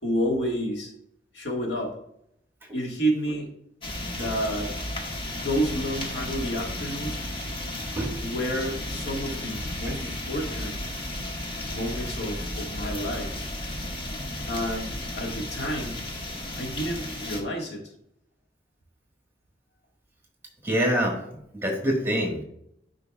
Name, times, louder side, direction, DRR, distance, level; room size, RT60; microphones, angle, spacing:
voice 1, 0.0-0.9 1.3-1.9 2.7-3.5 4.1-4.7 5.3-7.2 8.2-10.8 11.7-13.3 14.5-16.0 16.6-17.8, equal, 75° left, 0 dB, 1.7 m, -30 dB
sound 1, 3.8-17.4, left 1 dB, 30° left, 1.1 m, -34 dB
voice 2, 20.6-21.2 21.5-22.4, equal, 15° right, 0 dB, 1.5 m, -25 dB
9.7 x 5.1 x 2.3 m, 0.75 s
head